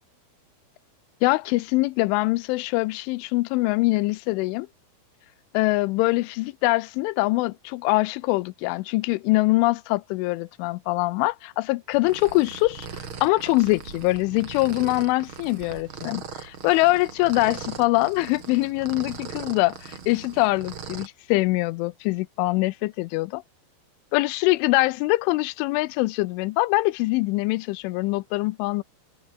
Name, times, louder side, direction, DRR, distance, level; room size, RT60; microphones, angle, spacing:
voice 1, 1.2-4.7 5.5-12.9 13.2-23.4 24.1-28.8, left 21 dB, 85° left, 3.1 m, -23 dB
sound 1, 11.9-21.1, right 6 dB, 40° right, 2.0 m, -39 dB
omnidirectional pair, 5.6 m